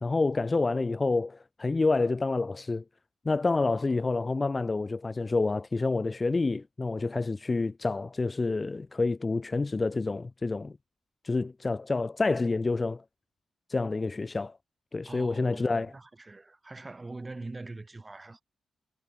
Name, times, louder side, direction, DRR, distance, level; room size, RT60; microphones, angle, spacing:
voice 1, 0.0-2.8 3.2-10.7 11.2-13.0 13.7-14.6 14.9-15.9, left 3 dB, 25° left, 0.4 m, -28 dB
voice 2, 15.1-18.4, right 2 dB, 20° right, 1.8 m, -43 dB
wide cardioid pair, 130°, 0 cm